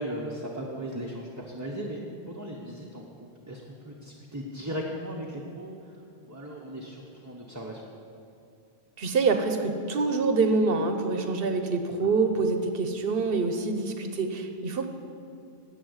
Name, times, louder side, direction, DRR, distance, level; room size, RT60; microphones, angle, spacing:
voice 1, 0.0-7.8 12.0-12.2, equal, 15° right, -2 dB, 1.0 m, -37 dB
voice 2, 9.0-14.9, right 4 dB, 60° right, 6 dB, 1.2 m, -26 dB
10.5 x 8.1 x 8.1 m, 2.7 s
omnidirectional pair, 1.1 m